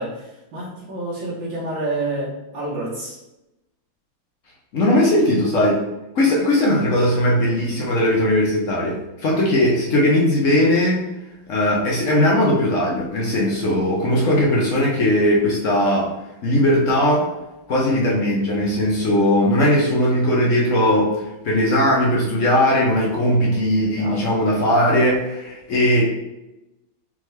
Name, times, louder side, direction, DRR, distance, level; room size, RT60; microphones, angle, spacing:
voice 1, 0.0-3.2 6.3-6.4 24.0-24.2, right 2 dB, 75° right, -6 dB, 1.7 m, -28 dB
voice 2, 4.7-5.8 6.1-11.0 11.5-16.2 16.4-17.3 17.7-21.2 21.4-26.1, left 1 dB, 65° left, -3 dB, 0.7 m, -18 dB
3.6 x 3.5 x 3.1 m, 0.94 s
omnidirectional pair, 2.2 m